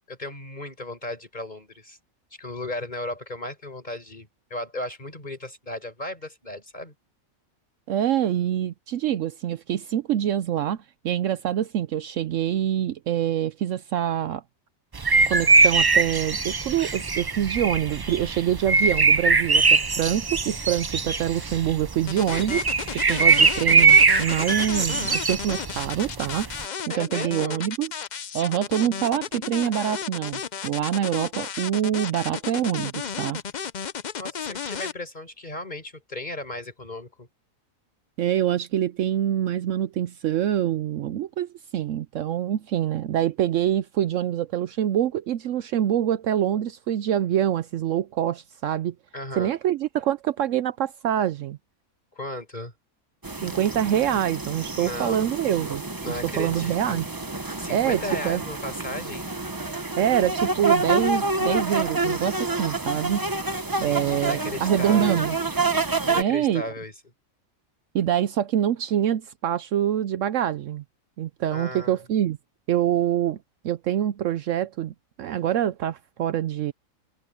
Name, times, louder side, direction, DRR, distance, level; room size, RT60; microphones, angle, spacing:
voice 1, 0.1-2.0 2.4-6.9 26.9-27.6 34.2-37.3 49.1-49.5 52.1-52.7 54.8-55.3 56.0-57.0 57.6-59.3 63.7-65.2 66.0-66.9 71.5-72.1, left 1 dB, 30° left, 5.4 m, -35 dB
voice 2, 7.9-14.4 15.3-22.7 22.9-26.5 26.9-27.9 28.3-33.4 38.2-48.9 49.4-51.6 53.4-57.0 57.7-58.0 58.2-58.4 60.0-63.2 63.8-65.3 66.2-66.6 67.9-70.8 71.2-72.4 72.7-73.4 73.6-76.7, right 10 dB, 70° right, 0.9 m, -25 dB
sound 1, 14.9-26.6, right 4 dB, 40° right, 0.3 m, -21 dB
sound 2, 22.1-34.9, left 7 dB, 45° left, 0.6 m, -33 dB
sound 3, 53.2-66.2, right 3 dB, 20° right, 0.8 m, -28 dB
omnidirectional pair, 1.4 m